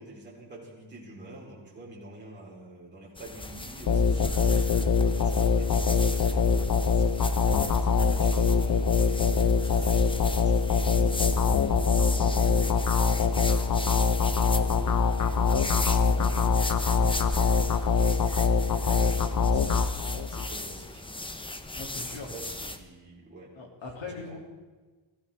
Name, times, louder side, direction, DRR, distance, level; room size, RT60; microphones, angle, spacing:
voice 1, 0.0-16.6 16.9-19.8 20.3-21.0 21.9-23.5 24.3-24.4, right 1 dB, 25° right, -6 dB, 3.9 m, -48 dB
sound 1, 3.2-22.8, left 2 dB, 10° left, 0.8 m, -37 dB
sound 2, 3.9-20.5, left 5 dB, 45° left, 0.8 m, -24 dB
voice 2, 21.8-22.3 23.5-24.4, left 4 dB, 75° left, 1 dB, 2.9 m, -40 dB
21.5 x 15.0 x 3.5 m, 1.3 s
wide cardioid pair, 160°, 46 cm